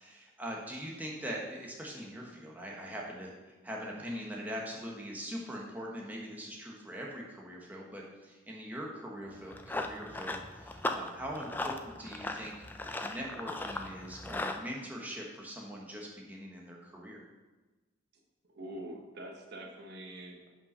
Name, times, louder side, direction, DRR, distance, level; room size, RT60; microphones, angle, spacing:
voice 1, 0.0-3.3 3.6-12.5 13.0-17.2, equal, 10° right, -2 dB, 1.1 m, -42 dB
Run, 9.3-14.6, left 2 dB, 10° left, 0.3 m, -38 dB
voice 2, 18.5-20.5, right 1 dB, 55° right, 1 dB, 1.1 m, -45 dB
5.5 x 5.4 x 5.5 m, 1.2 s
head